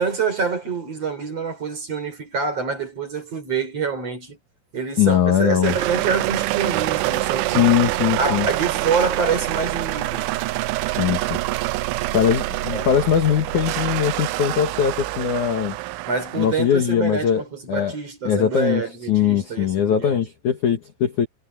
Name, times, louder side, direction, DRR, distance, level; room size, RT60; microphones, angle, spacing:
voice 1, 0.0-4.4 4.7-7.8 8.2-10.3 12.7-12.9 16.1-20.2, right 5 dB, 30° right, 4.7 m, -26 dB
voice 2, 5.0-5.8 7.5-8.5 10.9-11.4 12.1-15.8 16.4-17.9 18.2-18.8 19.1-21.3, left 8 dB, 60° left, 2.1 m, -20 dB
sound 1, 5.6-16.5, right 18 dB, 80° right, 3.1 m, -25 dB
omnidirectional pair, 5.9 m